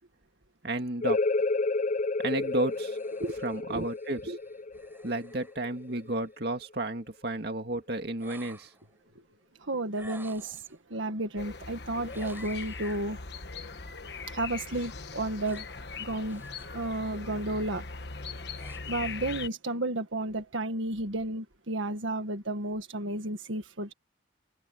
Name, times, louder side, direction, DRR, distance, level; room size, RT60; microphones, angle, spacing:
voice 1, 0.6-1.2 2.2-3.0 3.4-4.3 5.0-8.7 9.1-9.3, right 2 dB, 55° right, 2.2 m, -32 dB
sound 1, 1.0-6.4, left 3 dB, 40° left, 0.4 m, -31 dB
sound 2, 2.2-6.4 8.2-8.9 9.9-10.8 12.0-13.0 14.7-16.8 17.2-17.5 18.1-19.1, right 2 dB, 10° right, 4.9 m, -54 dB
voice 2, 9.6-10.6 10.9-13.2 14.3-15.7 16.0-16.4 16.7-17.9 18.9-23.9, right 1 dB, 85° right, 1.7 m, -32 dB
sound 3, 11.4-19.5, left 4 dB, 55° left, 1.3 m, -40 dB
head